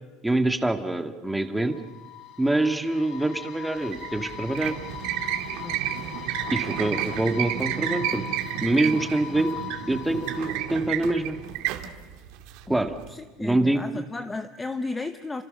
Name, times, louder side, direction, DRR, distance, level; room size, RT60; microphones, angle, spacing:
voice 1, 0.2-1.8 2.4-4.7 6.5-8.2 8.6-11.4 12.7-12.9 13.4-14.1, right 2 dB, 5° right, 6 dB, 1.8 m, -25 dB
sound 1, 1.4-11.5, left 10 dB, 55° left, 3.4 m, -40 dB
sound 2, 3.8-13.1, right 13 dB, 70° right, 2.3 m, -31 dB
voice 2, 12.7-15.4, left 3 dB, 10° left, 9 dB, 0.9 m, -34 dB
30.0 x 26.0 x 6.5 m, 1.3 s
cardioid pair, 150°, 0 cm